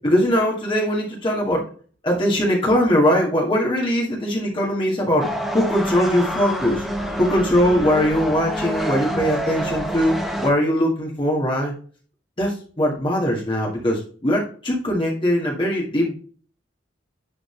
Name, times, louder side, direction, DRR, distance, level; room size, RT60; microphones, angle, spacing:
voice 1, 0.0-1.6 2.0-5.3 5.5-6.9 7.2-11.7 12.4-16.1, equal, 25° left, -4 dB, 1.8 m, -21 dB
sound 1, 5.2-10.5, equal, ahead, 1.1 m, -27 dB
11.0 x 3.9 x 3.2 m, 0.42 s
head